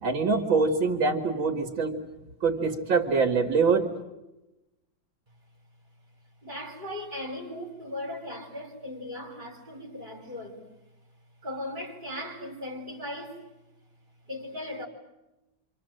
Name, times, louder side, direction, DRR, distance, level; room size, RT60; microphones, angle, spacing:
voice 1, 0.0-2.0 2.4-3.9, right 4 dB, 80° right, 3 dB, 2.8 m, -24 dB
voice 2, 6.4-10.7 11.4-13.4 14.2-14.9, left 1 dB, 25° right, 2 dB, 4.8 m, -38 dB
27.0 x 27.0 x 7.8 m, 0.98 s
omnidirectional pair, 2.1 m